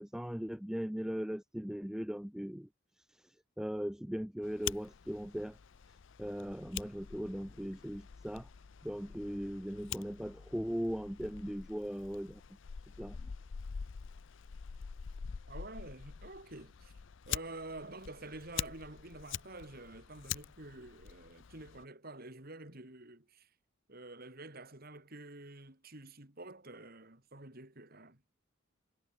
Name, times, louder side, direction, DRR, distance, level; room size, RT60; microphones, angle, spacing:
voice 1, 0.0-2.7 3.1-5.6 6.2-8.5 8.8-12.4 13.0-13.3, equal, 5° right, 0.4 m, -39 dB
Fire, 4.4-21.8, left 8 dB, 65° left, 0.5 m, -45 dB
voice 2, 15.5-16.9 17.3-23.5 23.9-28.2, right 2 dB, 45° right, 3.3 m, -49 dB
head